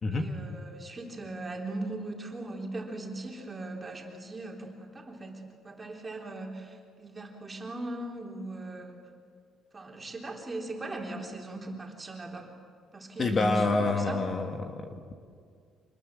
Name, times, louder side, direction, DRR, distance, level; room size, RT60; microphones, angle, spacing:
voice 1, 0.0-9.0 9.7-12.5 12.9-14.2, right 2 dB, 20° right, 0 dB, 3.7 m, -39 dB
voice 2, 13.2-15.1, left 3 dB, 35° left, 5 dB, 1.7 m, -27 dB
25.5 x 20.5 x 7.7 m, 2.2 s
cardioid pair, 125°, 0 cm